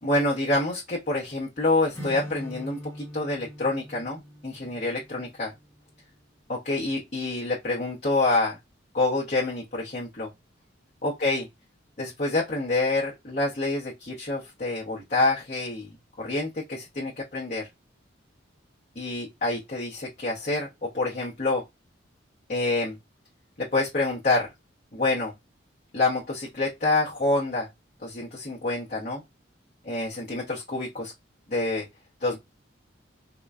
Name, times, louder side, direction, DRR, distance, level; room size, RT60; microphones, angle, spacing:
voice 1, 0.0-5.5 6.5-8.6 8.9-10.3 11.0-11.4 12.0-15.9 16.2-17.7 19.0-21.6 22.5-23.0 23.6-24.5 24.9-25.3 25.9-27.7 28.0-29.2 29.8-31.1 31.5-31.9 32.2-32.4, left 2 dB, 40° left, 0.8 m, -27 dB
Acoustic guitar / Strum, 1.9-5.8, equal, 15° left, 0.9 m, -42 dB
3.8 x 2.1 x 2.3 m
head